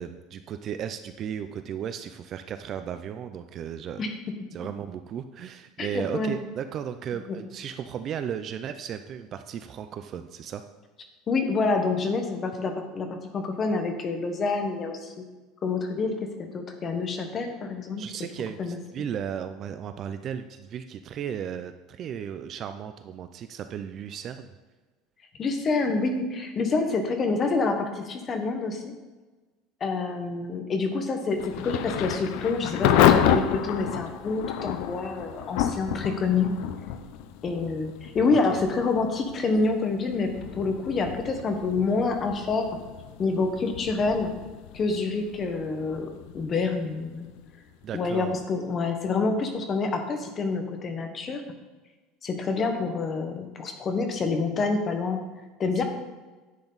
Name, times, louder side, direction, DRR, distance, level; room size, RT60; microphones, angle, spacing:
voice 1, 0.0-4.0 4.5-10.6 18.0-24.5 38.3-38.6 47.8-48.3 55.8-55.9, right 8 dB, 30° right, 9 dB, 0.4 m, -35 dB
voice 2, 5.8-6.3 7.3-7.4 11.3-15.2 15.6-18.0 18.6-18.8 25.4-28.9 29.8-36.5 37.4-42.7 43.2-44.3 44.7-46.1 46.3-47.3 47.9-51.4 52.2-55.3 55.6-55.8, left 4 dB, 25° left, 5 dB, 1.1 m, -27 dB
Thunder / Rain, 31.4-48.1, left 10 dB, 60° left, 0.6 m, -29 dB
10.5 x 8.0 x 4.0 m, 1.2 s
cardioid pair, 175°, 0 cm